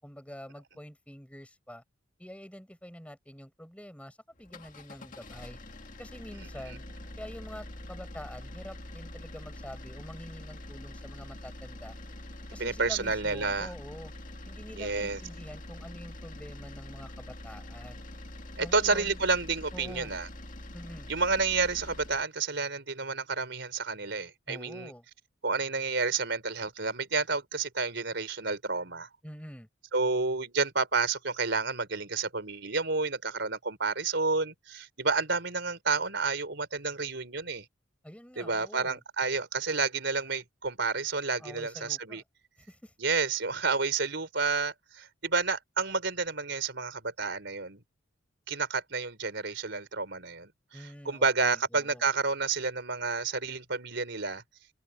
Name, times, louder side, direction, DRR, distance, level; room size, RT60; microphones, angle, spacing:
voice 1, 0.0-1.8 2.2-5.6 6.0-6.8 7.2-12.0 12.5-14.1 14.5-18.0 18.6-19.2 19.7-20.1 20.7-21.1 24.5-25.0 29.2-29.7 38.0-39.0 41.4-42.2 42.6-42.9 50.7-52.0, equal, 5° left, 7.0 m, -46 dB
sound 1, 4.4-22.3, left 1 dB, 40° left, 2.1 m, -44 dB
voice 2, 12.6-13.7 14.8-15.2 18.6-20.3 21.1-24.9 25.4-29.1 29.9-37.6 38.4-42.2 43.0-47.8 48.5-54.4, right 4 dB, 60° right, 4.4 m, -30 dB
open air
head